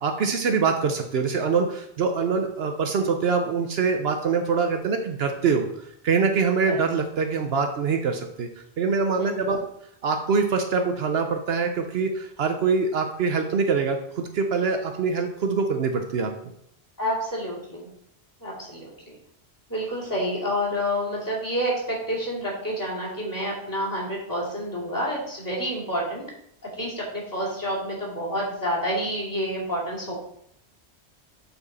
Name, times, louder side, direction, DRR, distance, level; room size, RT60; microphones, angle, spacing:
voice 1, 0.0-5.7 6.0-8.5 8.8-9.6 10.0-16.3, right 5 dB, 70° right, 5 dB, 0.9 m, -24 dB
voice 2, 9.1-9.6 17.0-17.9 18.4-19.1 19.7-26.2 26.8-30.1, equal, 15° left, -6 dB, 2.6 m, -29 dB
8.0 x 4.5 x 4.1 m, 0.71 s
omnidirectional pair, 1.1 m